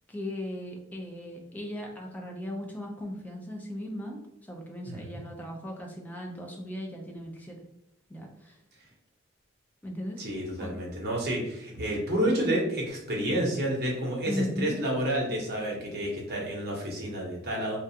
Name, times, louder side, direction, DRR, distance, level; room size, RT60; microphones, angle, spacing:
voice 1, 0.1-7.6 8.1-8.6 9.8-10.2 10.6-10.7 14.3-14.8, left 1 dB, 10° left, 0 dB, 0.4 m, -37 dB
voice 2, 4.9-5.2 10.2-17.8, right 1 dB, 50° right, -2 dB, 0.8 m, -30 dB
2.4 x 2.3 x 2.7 m, 0.79 s
head